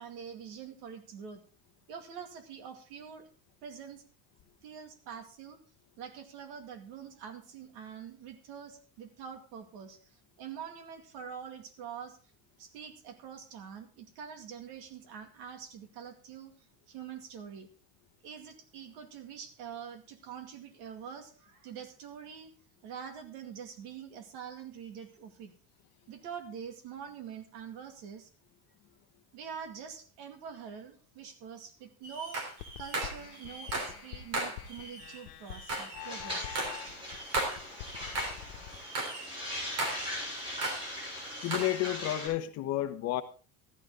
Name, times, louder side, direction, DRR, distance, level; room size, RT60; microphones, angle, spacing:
voice 1, 0.0-1.4 1.9-3.3 3.6-4.0 4.6-5.6 6.0-12.2 12.6-16.5 16.9-17.7 18.2-22.5 22.8-25.5 26.1-28.3 29.3-32.5 32.8-36.6, right 7 dB, 70° right, 6 dB, 2.3 m, -45 dB
sound 1, 32.0-34.1 34.3-38.4 38.7-40.9 41.2-41.8, right 2 dB, 40° right, 3.4 m, -37 dB
sound 2, 32.6-38.8, left 13 dB, 70° left, 1.3 m, -46 dB
sound 3, 36.0-42.3, left 1 dB, 15° right, 7.7 m, -40 dB
voice 2, 41.4-43.2, left 14 dB, 40° left, 9 dB, 1.0 m, -31 dB
13.5 x 12.0 x 3.7 m, 0.37 s
cardioid pair, 175°, 38 cm